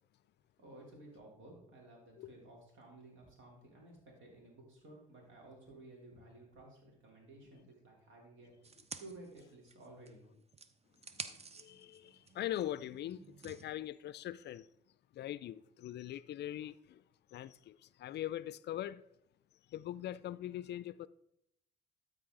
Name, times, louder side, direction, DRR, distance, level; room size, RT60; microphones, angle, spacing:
voice 1, 0.6-10.3, right 2 dB, 70° right, 3.4 m, -55 dB
sound 1, 8.6-10.2 10.5-13.7, right 4 dB, 30° right, 0.8 m, -50 dB
voice 2, 11.6-14.7 15.1-17.0 17.3-19.0 19.7-21.1, left 12 dB, 55° left, 0.4 m, -42 dB
13.0 x 4.8 x 3.8 m
hypercardioid pair, 55°, 21 cm